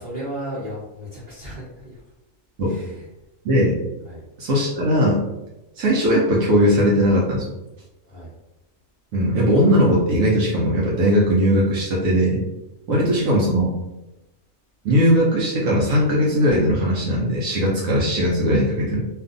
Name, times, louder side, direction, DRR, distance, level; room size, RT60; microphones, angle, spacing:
voice 1, 0.0-2.0 2.6-3.1 4.0-4.2 8.0-8.3 12.9-13.1, equal, 45° right, -8 dB, 0.9 m, -35 dB
voice 2, 3.4-3.8 4.4-5.2 5.8-7.5 9.1-12.4 12.9-13.7 14.8-19.1, equal, 75° right, -4 dB, 1.0 m, -19 dB
2.6 x 2.4 x 2.4 m, 0.95 s
omnidirectional pair, 1.4 m